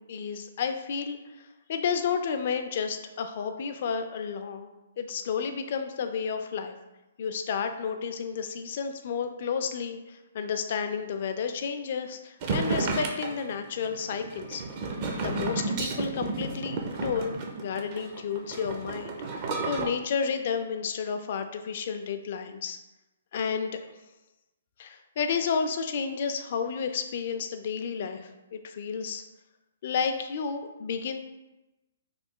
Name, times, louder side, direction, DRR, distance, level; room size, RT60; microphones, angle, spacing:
voice 1, 0.0-4.7 5.0-6.7 7.2-14.6 15.2-19.2 19.6-22.8 23.3-23.9 24.8-29.2 29.8-31.2, left 6 dB, 55° left, 7 dB, 0.4 m, -31 dB
sound 1, 12.4-19.9, right 3 dB, 40° right, 0.5 m, -32 dB
3.2 x 2.2 x 3.6 m, 1.0 s
hypercardioid pair, 140°, 0 cm